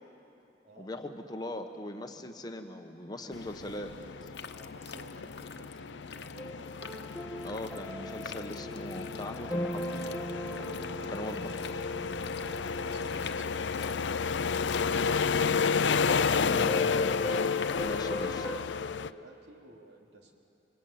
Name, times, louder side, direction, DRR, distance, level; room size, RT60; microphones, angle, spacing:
voice 1, 0.8-4.3 7.4-10.0 11.1-11.9 16.5-16.8 17.8-18.5, left 1 dB, 20° left, 5 dB, 1.2 m, -40 dB
sound 1, 3.3-19.1, left 5 dB, 90° left, 0.5 m, -32 dB
sound 2, 4.2-18.2, left 6 dB, 70° left, 1.1 m, -48 dB
voice 2, 4.4-6.7 10.8-11.6 12.5-13.6 14.7-15.4 17.7-20.3, right 1 dB, 70° right, 1 dB, 3.2 m, -54 dB
sound 3, 6.4-18.6, equal, 5° right, 1.9 m, -40 dB
26.0 x 24.5 x 8.8 m, 2.7 s
head